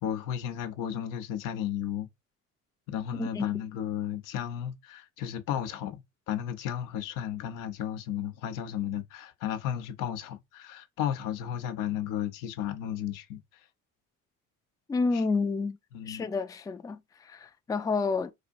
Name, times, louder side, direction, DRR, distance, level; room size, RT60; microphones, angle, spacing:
voice 1, 0.0-2.1 2.9-13.4 15.1-15.2 15.9-16.2, left 10 dB, 85° left, 0.7 m, -34 dB
voice 2, 3.2-3.6 14.9-15.8 16.1-18.3, left 4 dB, 10° left, 0.3 m, -30 dB
4.2 x 2.5 x 2.5 m
supercardioid pair, 85°, 31 cm